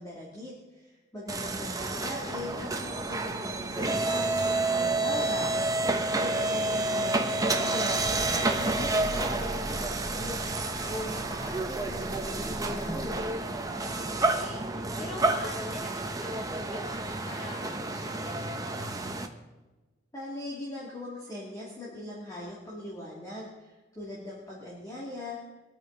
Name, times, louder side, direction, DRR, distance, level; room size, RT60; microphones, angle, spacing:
voice 1, 0.0-4.2 4.7-5.5 6.1-10.4 10.8-13.2 20.1-25.4, left 1 dB, 20° left, -7 dB, 2.7 m, -40 dB
sound 1, 1.3-19.3, right 2 dB, 20° right, 1.0 m, -29 dB
voice 2, 4.4-5.3 13.7-19.0, left 1 dB, 35° left, -3 dB, 4.5 m, -46 dB
22.5 x 9.0 x 4.0 m, 1.2 s
head